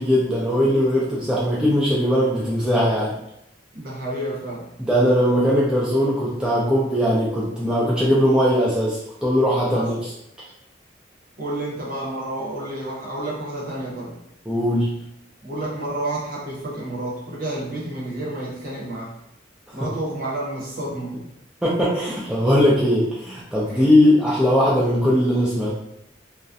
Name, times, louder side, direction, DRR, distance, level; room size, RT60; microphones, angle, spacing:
voice 1, 0.0-3.1 4.8-10.1 14.5-14.9 19.8-19.9 21.6-25.7, equal, 5° right, -7 dB, 0.3 m, -20 dB
voice 2, 3.7-4.6 9.7-9.9 11.4-14.1 15.4-19.1 19.7-21.2 22.0-22.1 23.7-24.0, right 1 dB, 50° right, -5 dB, 0.8 m, -30 dB
2.3 x 2.0 x 2.6 m, 0.80 s
head